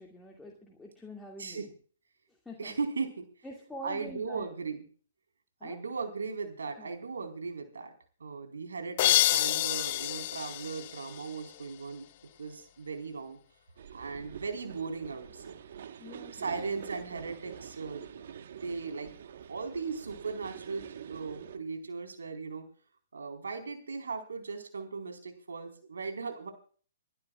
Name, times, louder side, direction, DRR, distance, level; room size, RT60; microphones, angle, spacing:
voice 1, 0.0-1.7 2.3-2.8 3.4-4.5 5.6-5.8 6.8-7.0 16.0-16.7, left 1 dB, 5° left, -1 dB, 2.4 m, -46 dB
voice 2, 2.6-3.3 3.8-4.8 5.6-7.9 8.2-12.1 12.4-13.4 13.9-15.6 16.3-19.1 19.5-22.6 23.1-26.5, right 4 dB, 85° right, 6 dB, 4.5 m, -38 dB
sound 1, 9.0-11.7, left 14 dB, 45° left, 0.7 m, -28 dB
sound 2, 13.8-21.6, right 8 dB, 60° right, 1.3 m, -46 dB
28.5 x 11.5 x 2.4 m, 0.42 s
hypercardioid pair, 140°, 0 cm